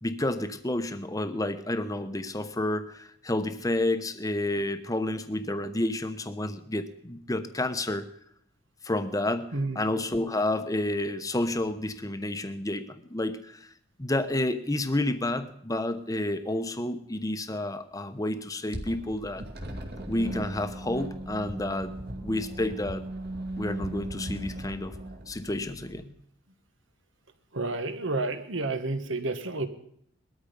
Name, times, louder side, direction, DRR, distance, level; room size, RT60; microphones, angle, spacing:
voice 1, 0.0-8.1 8.8-9.5 9.7-13.7 14.0-19.4 20.1-21.9 22.2-23.0 23.6-24.9 25.3-26.1, left 1 dB, 15° left, 10 dB, 1.0 m, -30 dB
sound 1, 18.7-26.0, right 1 dB, 50° right, 2.6 m, -38 dB
voice 2, 27.5-29.7, right 2 dB, 70° right, 9 dB, 1.6 m, -30 dB
20.5 x 13.5 x 5.3 m, 0.67 s
head